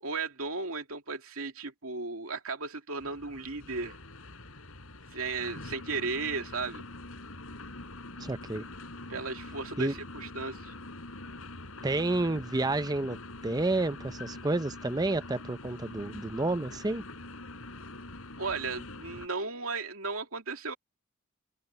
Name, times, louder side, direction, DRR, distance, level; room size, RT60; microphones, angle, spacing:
voice 1, 0.0-4.0 5.1-6.8 9.1-10.7 18.4-20.8, right 4 dB, 85° right, 2.6 m, -35 dB
sound 1, 3.0-19.3, left 2 dB, 80° left, 4.7 m, -44 dB
voice 2, 8.2-8.6 9.8-9.9 11.8-13.2 13.4-17.0, right 2 dB, 20° right, 0.6 m, -30 dB
head